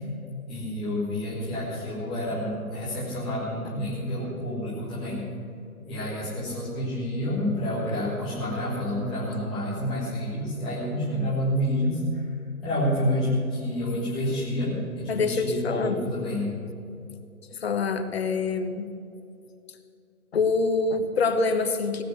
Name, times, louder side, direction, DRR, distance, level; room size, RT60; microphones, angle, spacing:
voice 1, 0.5-5.2 5.8-12.2 12.6-16.6, equal, ahead, -12 dB, 0.6 m, -28 dB
voice 2, 15.1-16.0 17.5-18.9 20.3-22.0, left 4 dB, 45° left, 9 dB, 1.2 m, -25 dB
17.5 x 7.7 x 8.4 m, 2.6 s
figure-of-eight pair, 140°, 44 cm